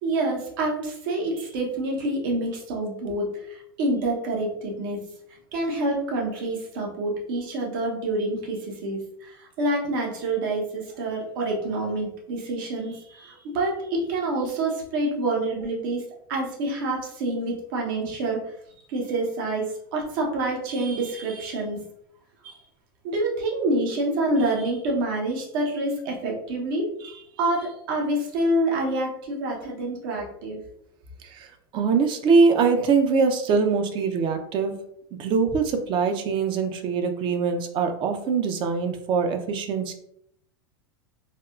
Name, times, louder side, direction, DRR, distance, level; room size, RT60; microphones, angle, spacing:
voice 1, 0.0-5.0 5.5-18.5 18.9-21.8 22.4-22.6 23.0-26.9 27.4-30.6, right 2 dB, 65° right, 0 dB, 0.9 m, -27 dB
voice 2, 31.7-34.8 35.2-39.9, right 5 dB, 40° right, 6 dB, 0.5 m, -23 dB
3.4 x 2.3 x 2.4 m, 0.71 s
hypercardioid pair, 95°, 12 cm